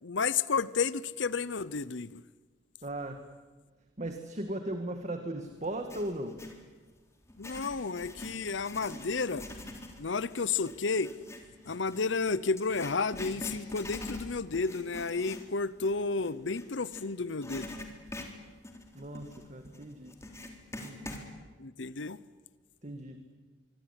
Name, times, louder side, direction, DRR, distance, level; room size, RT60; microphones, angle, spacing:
voice 1, 0.0-2.2 7.4-9.5 10.0-11.1 11.7-17.7 21.6-22.2, left 4 dB, 70° left, 17 dB, 0.8 m, -32 dB
voice 2, 2.8-3.2 4.0-6.4 18.9-20.2 20.8-21.1 22.8-23.3, right 1 dB, 40° right, 6 dB, 2.0 m, -37 dB
Writing, 5.6-6.6 7.2-17.0 17.4-21.3, left 1 dB, 15° left, 3.7 m, -44 dB
25.0 x 24.0 x 10.0 m, 1.3 s
head